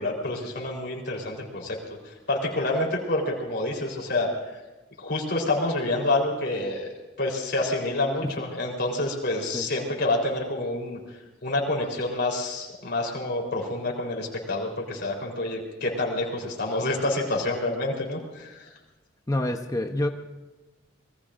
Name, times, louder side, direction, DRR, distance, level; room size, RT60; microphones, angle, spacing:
voice 1, 0.0-1.8 2.3-4.3 5.0-6.9 7.2-11.0 11.4-18.7, left 2 dB, 55° left, -1 dB, 3.9 m, -28 dB
voice 2, 19.3-20.1, left 1 dB, 15° left, 4 dB, 0.8 m, -27 dB
26.0 x 21.0 x 2.6 m, 1.2 s
head